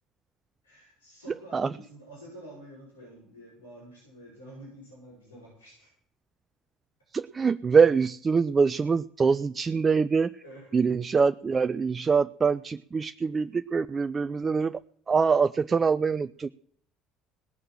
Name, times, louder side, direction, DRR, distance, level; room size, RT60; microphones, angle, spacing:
voice 1, 0.6-5.9 10.4-10.8, right 1 dB, 90° left, -7 dB, 7.2 m, -48 dB
voice 2, 7.1-10.4 10.7-14.8 15.1-16.5, right 5 dB, 30° right, 12 dB, 0.4 m, -24 dB
18.5 x 6.6 x 7.7 m, 0.63 s
figure-of-eight pair, 60°, 0 cm